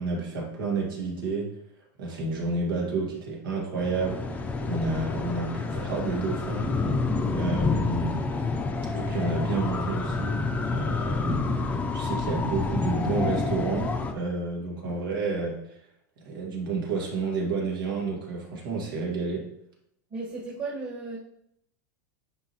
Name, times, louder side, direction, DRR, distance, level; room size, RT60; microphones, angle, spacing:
voice 1, 0.0-1.5 2.0-6.9 7.3-8.3 8.9-11.4 11.9-15.8 16.2-19.5, right 3 dB, 90° right, -1 dB, 2.2 m, -30 dB
sound 1, 3.8-14.1, left 3 dB, 10° left, 0.6 m, -28 dB
voice 2, 20.1-21.2, right 3 dB, 35° right, -3 dB, 1.5 m, -35 dB
9.7 x 3.9 x 3.0 m, 0.76 s
supercardioid pair, 140°, 11 cm